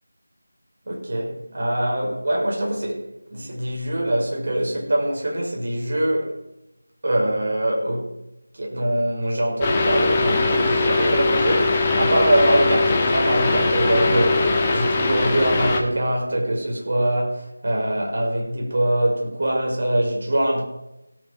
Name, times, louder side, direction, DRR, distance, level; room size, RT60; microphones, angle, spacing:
voice 1, 0.9-6.3 7.0-8.1 8.5-20.6, right 1 dB, 45° right, 5.5 m, -23 dB
sound 1, 9.6-15.8, left 3 dB, 15° left, 1.6 m, -21 dB
17.5 x 9.6 x 4.7 m
figure-of-eight pair, 165°, 0 cm